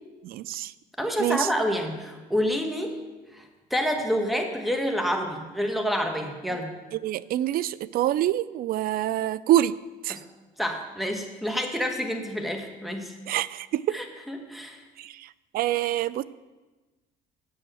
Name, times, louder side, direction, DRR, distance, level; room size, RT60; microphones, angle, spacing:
voice 1, 0.2-0.7 1.2-1.5 7.0-9.7 10.0-10.2 13.3-14.0 15.0-15.3 15.5-16.2, right 13 dB, 60° right, 19 dB, 0.4 m, -26 dB
voice 2, 1.0-2.9 3.3-3.4 3.7-6.7 10.1-10.2 10.6-13.1 13.9-14.8, equal, ahead, 4 dB, 1.4 m, -28 dB
9.1 x 5.6 x 7.8 m, 1.2 s
cardioid pair, 110°, 17 cm